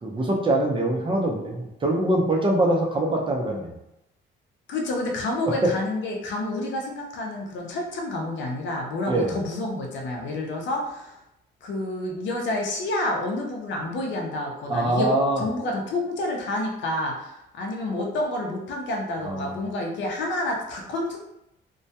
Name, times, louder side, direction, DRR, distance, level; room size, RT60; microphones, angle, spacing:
voice 1, 0.0-3.7 5.5-5.7 9.1-9.4 14.7-15.4 19.2-19.6, right 1 dB, 25° right, 0 dB, 0.6 m, -23 dB
voice 2, 4.7-11.2 11.6-15.1 15.4-21.2, left 1 dB, 70° left, 0 dB, 0.6 m, -29 dB
2.2 x 2.1 x 2.7 m, 0.84 s
cardioid pair, 90°, 20 cm